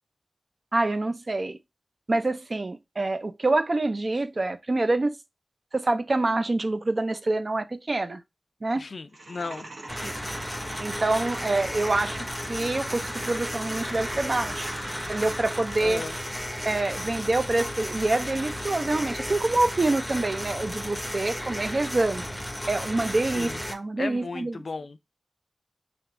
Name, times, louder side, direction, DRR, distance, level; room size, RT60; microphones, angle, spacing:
voice 1, 0.7-1.6 2.1-5.2 5.7-8.2 8.6-8.8 10.0-10.1 10.8-14.7 15.1-16.0 16.6-22.2 22.7-24.6, right 2 dB, 50° right, 0.4 m, -26 dB
voice 2, 8.7-9.7 15.8-16.2 23.3-23.6 24.0-25.0, left 3 dB, 75° left, 0.4 m, -35 dB
sound 1, 9.1-16.1, right 2 dB, 85° right, 1.1 m, -41 dB
sound 2, 9.9-23.7, equal, 5° left, 0.7 m, -34 dB
3.4 x 2.5 x 3.6 m
wide cardioid pair, 60°, 0 cm